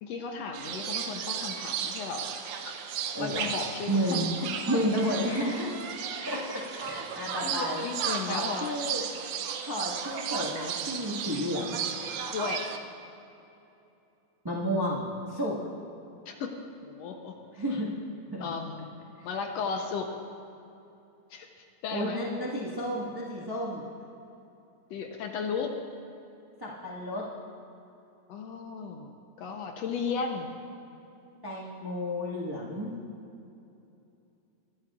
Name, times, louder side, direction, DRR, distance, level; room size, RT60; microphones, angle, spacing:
voice 1, 0.0-2.3 2.6-2.7 3.2-4.2 7.4-8.7 12.3-12.8 16.3-16.5 16.8-17.4 18.4-20.1 21.3-21.5 21.8-22.2 24.9-25.7 28.3-30.6, left 5 dB, 70° left, 3 dB, 1.8 m, -35 dB
sound 1, 0.5-12.8, right 7 dB, 80° right, 1.3 m, -35 dB
voice 2, 3.1-3.5 3.9-4.3 4.7-5.7 6.2-7.9 8.3-9.0 9.6-11.8 14.4-15.5 17.5-17.9 18.3-18.5 19.2-19.3 21.9-23.8 26.6-27.2 31.4-32.9, equal, 30° right, -5 dB, 0.4 m, -31 dB
22.0 x 11.5 x 2.4 m, 2.8 s
omnidirectional pair, 3.4 m